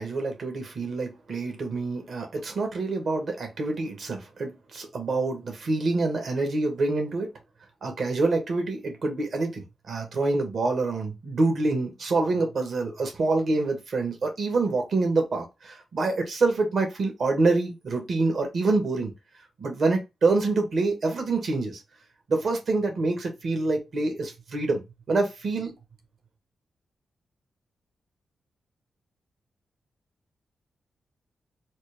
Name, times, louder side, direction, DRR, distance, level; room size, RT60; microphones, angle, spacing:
voice 1, 0.0-7.3 7.8-19.1 19.6-21.8 22.3-24.8 25.1-25.7, right 3 dB, 65° right, 1.4 m, -26 dB
4.2 x 2.0 x 3.4 m
cardioid pair, 55°, 0 cm